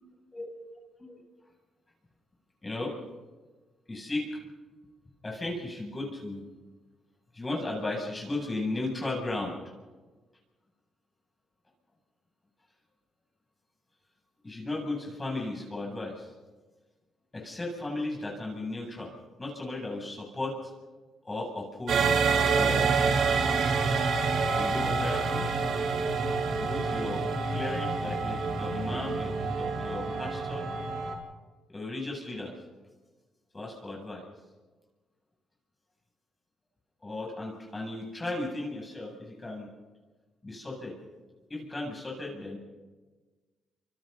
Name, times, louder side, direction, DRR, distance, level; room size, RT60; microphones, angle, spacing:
voice 1, 2.6-2.9 3.9-4.4 5.2-6.5 7.3-9.6 14.4-16.3 17.3-19.1 19.4-20.5 21.2-22.1 22.5-22.9 24.5-25.5 26.5-27.2 27.5-30.7 31.7-32.5 33.5-34.2 37.0-39.7 40.4-40.9 41.5-42.6, left 2 dB, 20° left, -1 dB, 7.8 m, -35 dB
sound 1, 21.9-31.1, right 4 dB, 65° right, 4.2 m, -27 dB
28.5 x 26.5 x 4.1 m, 1.3 s
cardioid pair, 90°, 0 cm